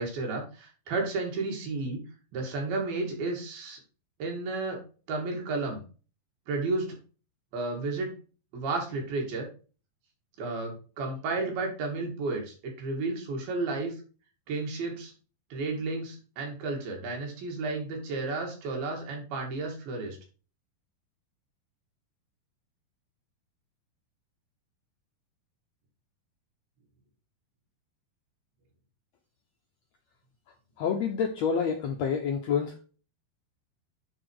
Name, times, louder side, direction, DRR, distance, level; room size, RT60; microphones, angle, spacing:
voice 1, 0.0-2.0 2.3-3.8 4.2-4.8 5.1-5.8 6.5-7.0 7.5-8.1 8.5-9.5 10.4-13.9 14.5-15.1 15.5-20.2, right 3 dB, 85° right, 1 dB, 4.3 m, -32 dB
voice 2, 30.8-32.8, left 6 dB, 85° left, 3 dB, 1.5 m, -28 dB
9.8 x 4.4 x 4.9 m, 0.37 s
omnidirectional pair, 4.2 m